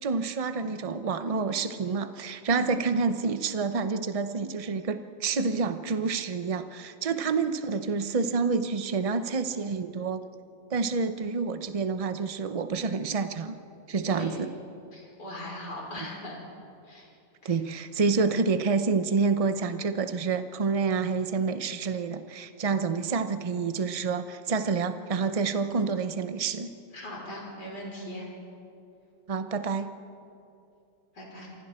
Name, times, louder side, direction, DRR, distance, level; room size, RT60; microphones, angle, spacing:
voice 1, 0.0-10.2 10.7-13.5 13.9-14.5 17.4-26.7 29.3-29.9, right 4 dB, 45° right, 9 dB, 0.4 m, -28 dB
voice 2, 14.1-14.4 14.9-16.4 16.8-17.1 17.4-17.5 26.9-28.3 31.1-31.5, left 1 dB, 65° left, -3 dB, 5.6 m, -39 dB
27.5 x 24.0 x 4.4 m, 2.6 s
omnidirectional pair, 2.0 m